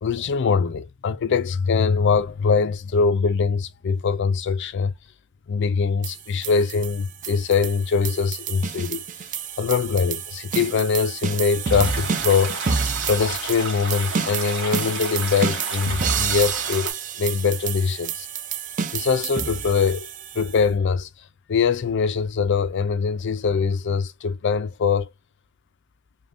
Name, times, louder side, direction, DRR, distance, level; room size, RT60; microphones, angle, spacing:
voice 1, 0.0-4.9 5.5-9.0 9.6-12.6 13.1-16.9 17.2-18.3 18.9-20.1 20.4-21.1 21.5-25.1, left 5 dB, 55° left, 0.4 m, -22 dB
sound 1, 6.0-20.6, right 6 dB, 35° right, 0.5 m, -29 dB
sound 2, 11.7-16.9, right 3 dB, 60° right, 2.6 m, -32 dB
5.2 x 2.2 x 2.6 m
head